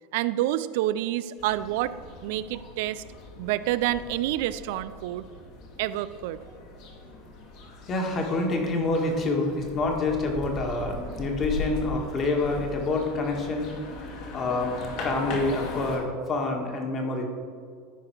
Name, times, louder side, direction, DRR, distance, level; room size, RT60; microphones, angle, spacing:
voice 1, 0.1-1.9 2.2-3.0 3.4-5.2 5.8-6.4, right 14 dB, 70° right, 15 dB, 0.3 m, -28 dB
sound 1, 1.4-16.0, left 2 dB, 60° left, 2.0 m, -39 dB
voice 2, 7.9-13.7 14.3-14.7 15.0-17.2, left 2 dB, 35° left, 2 dB, 1.7 m, -27 dB
13.5 x 4.8 x 4.7 m, 2.1 s
hypercardioid pair, 105°, 0 cm